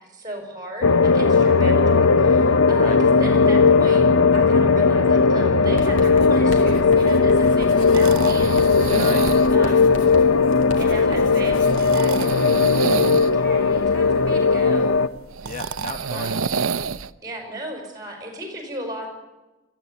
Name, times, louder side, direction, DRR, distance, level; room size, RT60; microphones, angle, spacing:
voice 1, 0.1-8.9 9.5-9.9 10.8-15.0 16.1-16.5 17.2-19.2, right 1 dB, 20° right, 3 dB, 5.3 m, -36 dB
sound 1, 0.8-15.1, left 4 dB, 90° left, 0.8 m, -17 dB
Writing, 5.8-11.8, left 1 dB, 60° left, 2.7 m, -36 dB
sound 2, 7.4-17.1, right 5 dB, 80° right, 0.6 m, -30 dB
voice 2, 8.9-9.8 15.4-16.3, left 1 dB, 35° left, 6 dB, 1.1 m, -34 dB
22.0 x 14.5 x 8.3 m, 1.1 s
head